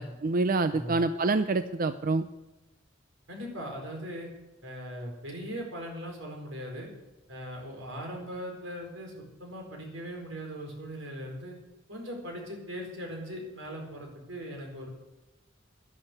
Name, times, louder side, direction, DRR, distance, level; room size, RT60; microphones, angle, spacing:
voice 1, 0.0-2.3, right 3 dB, 45° right, 11 dB, 0.5 m, -27 dB
voice 2, 3.3-4.3 4.6-6.9 7.3-11.6 11.9-14.9, equal, 90° right, 1 dB, 4.5 m, -39 dB
12.0 x 11.0 x 8.1 m, 1.0 s
head